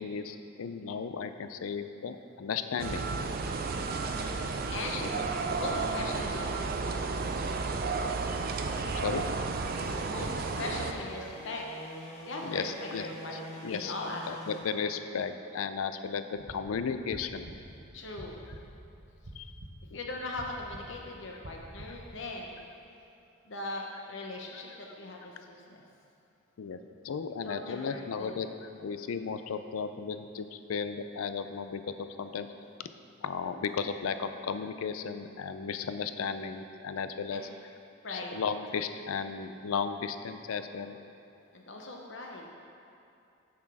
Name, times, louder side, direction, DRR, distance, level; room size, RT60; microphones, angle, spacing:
voice 1, 0.0-3.1 4.9-5.1 8.8-9.2 12.4-13.1 13.3-17.5 19.4-19.5 26.6-26.8 27.0-32.5 32.8-32.9 33.2-37.4 38.1-40.9, left 6 dB, 85° left, 10 dB, 0.4 m, -35 dB
sound 1, 2.8-10.9, right 4 dB, 45° right, 0.4 m, -32 dB
voice 2, 3.7-4.4 4.7-5.0 5.6-6.9 9.9-11.6 12.0-12.7 13.0-14.2 17.9-18.4 19.9-22.6 23.4-25.8 27.4-28.4 37.3-37.6 38.0-38.4 41.5-42.5, left 2 dB, 65° left, 0 dB, 0.8 m, -40 dB
sound 2, 9.6-14.6, equal, 30° left, 1.1 m, -45 dB
sound 3, 16.3-22.4, right 1 dB, 70° right, 0.9 m, -49 dB
7.3 x 6.1 x 4.8 m, 2.6 s
head